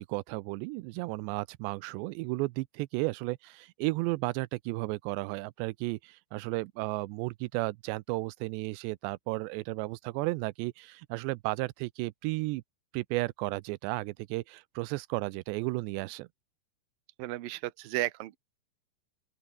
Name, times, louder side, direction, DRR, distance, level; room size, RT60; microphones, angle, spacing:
voice 1, 0.0-12.6 12.9-16.3, right 22 dB, 90° right, 2.8 m, -33 dB
voice 2, 17.2-18.4, right 17 dB, 70° right, 2.5 m, -33 dB
open air
omnidirectional pair, 4.9 m